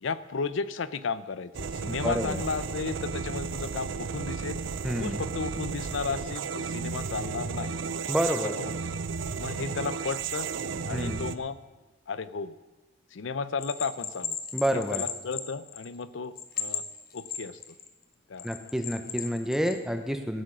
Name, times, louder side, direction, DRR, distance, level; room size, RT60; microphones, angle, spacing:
voice 1, 0.0-4.6 5.0-7.8 8.6-9.0 9.4-10.5 10.8-11.6 12.1-12.6 13.1-14.4 14.7-16.8 17.1-17.6 18.3-18.5, left 5 dB, 75° left, 15 dB, 0.6 m, -34 dB
sound 1, 1.5-11.4, right 5 dB, 70° right, 0.5 m, -33 dB
voice 2, 1.9-2.4 4.8-5.2 8.1-8.6 10.9-11.3 14.5-15.0 18.4-20.4, equal, ahead, 7 dB, 0.7 m, -29 dB
Bell, 13.6-16.0 16.4-17.9 18.4-19.8, left 8 dB, 45° left, 1.1 m, -35 dB
13.5 x 9.0 x 6.1 m, 1.2 s
head